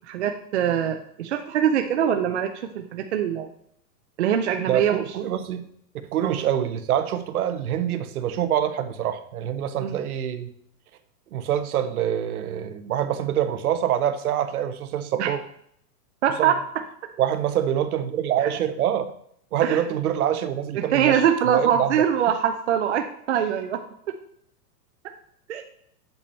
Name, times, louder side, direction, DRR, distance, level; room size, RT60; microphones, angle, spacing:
voice 1, 0.1-3.5 4.2-5.0 6.2-6.4 9.8-10.0 15.2-15.3 16.2-16.6 18.4-18.5 19.6-19.8 20.8-23.8 25.5-25.6, right 9 dB, 45° right, 5 dB, 0.6 m, -23 dB
voice 2, 4.7-5.6 6.1-10.5 11.3-15.4 16.4-16.5 17.2-19.1 19.5-22.0, right 10 dB, 60° right, 9 dB, 1.0 m, -25 dB
8.2 x 6.9 x 4.3 m, 0.69 s
supercardioid pair, 175°, 49 cm